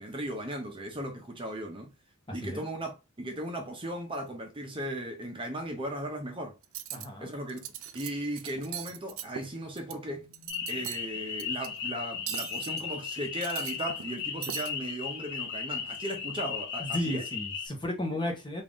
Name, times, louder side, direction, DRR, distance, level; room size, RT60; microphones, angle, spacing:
voice 1, 0.0-1.9 2.3-6.6 7.2-10.3 10.7-17.3 18.1-18.2, right 1 dB, 25° right, 0.8 m, -37 dB
voice 2, 2.3-2.6 6.9-7.3 16.8-18.6, left 1 dB, 25° left, 1.0 m, -34 dB
Cutlery silverware, 6.6-7.1 7.5-8.1 8.4-10.0 10.3-11.0 11.4-11.7 12.3-12.8 13.3-14.1 14.4-14.7, right 11 dB, 85° right, 0.5 m, -39 dB
sound 1, 10.5-17.7, left 6 dB, 60° left, 0.8 m, -36 dB
3.7 x 2.6 x 3.5 m
head